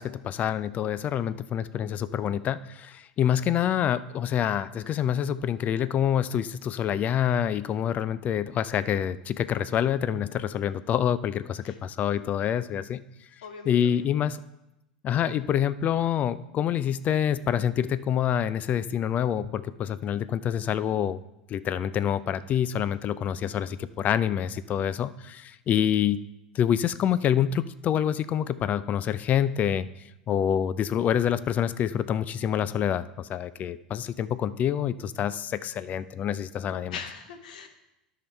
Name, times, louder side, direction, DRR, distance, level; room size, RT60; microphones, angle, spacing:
voice 1, 0.0-13.0 13.7-14.4 15.0-21.2 21.5-26.2 26.5-29.9 30.3-37.0, left 9 dB, 35° left, 16 dB, 0.3 m, -27 dB
voice 2, 13.4-14.0 15.2-15.4 36.9-37.7, left 6 dB, 70° left, 6 dB, 1.0 m, -41 dB
13.5 x 5.6 x 3.4 m, 0.89 s
figure-of-eight pair, 75°, 4 cm